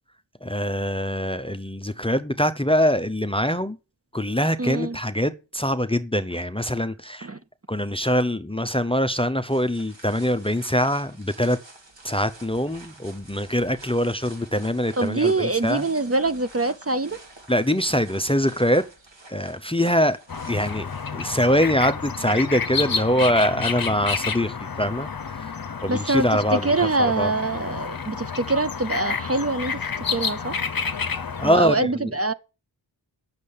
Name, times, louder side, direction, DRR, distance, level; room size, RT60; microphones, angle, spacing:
voice 1, 0.4-3.8 4.1-7.3 7.7-11.6 12.0-15.9 17.5-18.9 19.3-20.2 20.5-25.1 25.4-25.6 25.8-26.7 27.0-27.3 31.4-32.1, equal, 10° left, 0.6 m, -23 dB
voice 2, 4.6-5.0 7.2-7.4 15.0-17.2 25.9-30.6 31.4-32.3, right 2 dB, 30° right, 0.6 m, -24 dB
sound 1, 9.5-21.4, right 2 dB, 65° right, 2.5 m, -48 dB
sound 2, 20.3-31.5, left 6 dB, 50° left, 0.8 m, -30 dB
8.2 x 6.6 x 7.1 m
wide cardioid pair, 60°, 46 cm